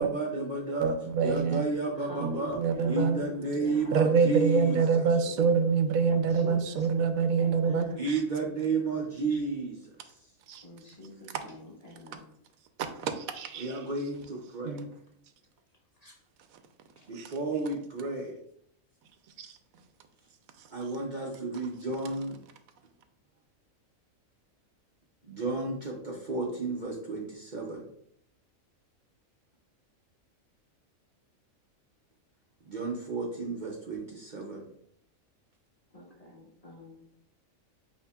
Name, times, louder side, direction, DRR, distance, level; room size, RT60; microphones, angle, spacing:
voice 1, 0.0-0.9 1.2-2.6 2.8-4.8 7.9-9.8 13.6-14.8 17.1-18.4 20.7-22.4 25.3-27.8 32.6-34.6, right 3 dB, 45° right, -1 dB, 0.7 m, -32 dB
voice 2, 0.8-1.7 2.2-3.2 3.9-8.2 10.5-10.6 12.8-13.8 14.6-14.9 17.1-17.3 19.4-19.5, right 5 dB, 85° right, 8 dB, 1.0 m, -26 dB
voice 3, 1.7-5.5 6.1-8.0 10.6-12.3 16.0-16.2 17.0-17.1 35.9-37.1, left 1 dB, 30° left, -2 dB, 0.9 m, -46 dB
8.1 x 2.8 x 2.3 m, 0.68 s
omnidirectional pair, 1.4 m